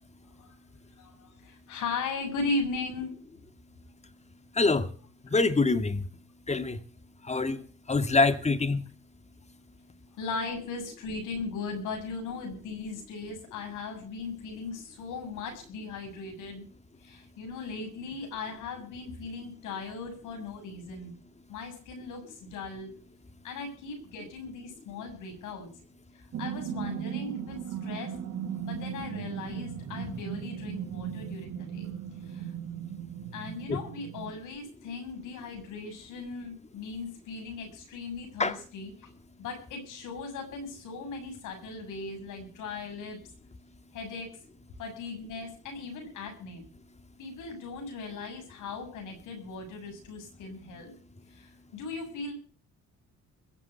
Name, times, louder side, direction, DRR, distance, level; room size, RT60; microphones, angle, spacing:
voice 1, 1.0-3.1 10.2-16.6 17.0-21.1 21.5-22.9 23.4-25.7 26.4-28.1 28.6-31.9 32.3-32.5 33.3-39.1 39.4-43.2 43.9-44.3 44.8-46.6 47.2-50.9 51.3-52.3, left 3 dB, 85° left, 7.0 m, -38 dB
voice 2, 4.5-4.9 5.2-6.0 6.5-6.8 7.2-8.8 30.0-30.2 33.7-33.8 38.4-38.6, left 3 dB, 20° left, 1.9 m, -25 dB
sound 1, 26.3-34.3, right 9 dB, 65° right, 1.7 m, -37 dB
21.5 x 7.5 x 8.2 m
cardioid pair, 90°, 30 cm